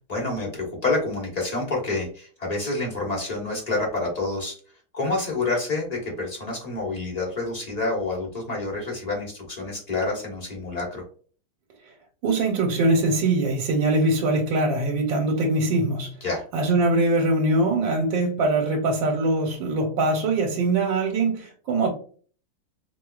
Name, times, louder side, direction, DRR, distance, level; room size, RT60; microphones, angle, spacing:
voice 1, 0.1-4.6 4.9-11.0 16.2-16.4, left 2 dB, 25° left, 1.0 m, -28 dB
voice 2, 12.2-16.1 16.5-21.9, right 2 dB, 75° right, 1.4 m, -22 dB
4.6 x 2.2 x 2.3 m
omnidirectional pair, 2.1 m